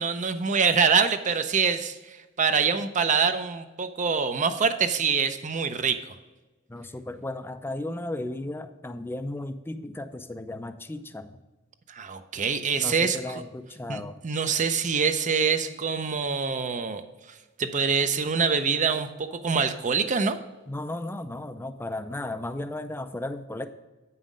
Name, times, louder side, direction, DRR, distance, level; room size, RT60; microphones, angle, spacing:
voice 1, 0.0-6.2 11.9-13.4 13.9-17.0 17.6-20.4, right 5 dB, 40° right, 9 dB, 0.6 m, -25 dB
voice 2, 6.7-11.4 12.7-14.2 15.6-15.8 20.7-23.7, left 1 dB, 10° left, 10 dB, 0.4 m, -35 dB
8.2 x 5.6 x 5.1 m, 1.2 s
head